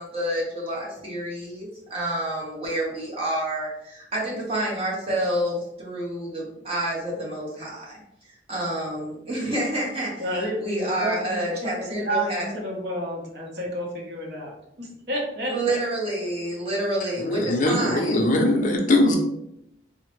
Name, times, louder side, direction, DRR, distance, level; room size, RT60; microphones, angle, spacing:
voice 1, 0.0-8.0 8.5-12.5 15.5-18.3, right 1 dB, 30° right, -4 dB, 1.0 m, -28 dB
voice 2, 10.2-11.4 11.6-14.5 14.8-15.8, right 1 dB, 60° right, -2 dB, 0.9 m, -30 dB
voice 3, 17.2-19.2, left 1 dB, 45° left, 3 dB, 0.4 m, -21 dB
3.5 x 2.1 x 3.0 m, 0.80 s
head